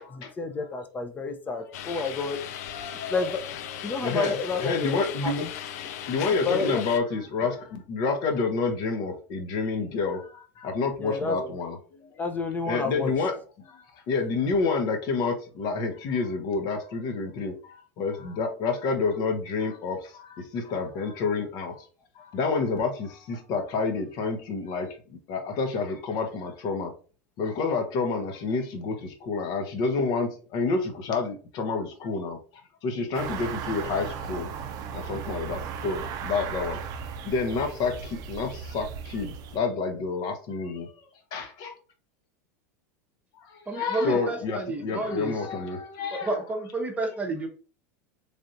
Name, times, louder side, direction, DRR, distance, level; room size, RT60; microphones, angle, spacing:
voice 1, 0.0-2.4 2.9-3.4 3.8-5.5 6.5-6.8 11.0-11.5 12.2-13.1, left 3 dB, 20° left, 6 dB, 0.6 m, -30 dB
sound 1, 1.7-7.0, left 10 dB, 75° left, 0.4 m, -37 dB
voice 2, 2.7-3.2 4.0-5.5 5.7-12.1 12.7-21.8 22.2-25.0 25.3-26.9 27.4-32.4 32.8-34.5 34.9-36.8 37.2-40.9 41.3-41.7 43.4-46.4, left 4 dB, 50° left, 6 dB, 0.8 m, -29 dB
sound 2, 33.1-39.6, right 7 dB, 45° right, 0.5 m, -36 dB
voice 3, 43.7-45.3 46.1-47.5, right 2 dB, 15° right, 2 dB, 0.8 m, -30 dB
3.4 x 2.6 x 2.6 m, 0.38 s
hypercardioid pair, 105°, 9 cm